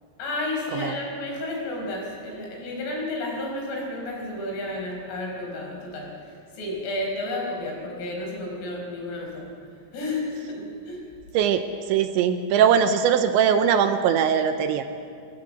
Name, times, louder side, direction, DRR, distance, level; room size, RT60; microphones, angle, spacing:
voice 1, 0.2-6.1 6.6-9.5 9.9-11.0, left 2 dB, 85° left, -1 dB, 8.0 m, -31 dB
voice 2, 11.9-14.8, right 8 dB, 80° right, 8 dB, 2.9 m, -21 dB
26.5 x 17.0 x 7.7 m, 2.3 s
omnidirectional pair, 6.0 m